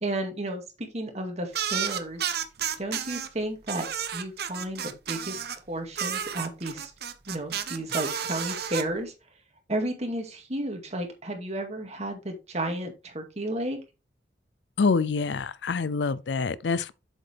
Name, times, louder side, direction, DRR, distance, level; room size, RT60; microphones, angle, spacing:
voice 1, 0.0-2.3 2.8-3.9 4.1-6.9 7.3-9.1 9.7-13.8, right 1 dB, 40° right, 2.2 m, -32 dB
sound 1, 1.5-3.3 3.7-5.6 5.9-8.8, right 8 dB, 65° right, 0.9 m, -31 dB
voice 2, 14.8-16.9, left 4 dB, 85° left, 0.5 m, -26 dB
7.9 x 7.0 x 3.4 m
head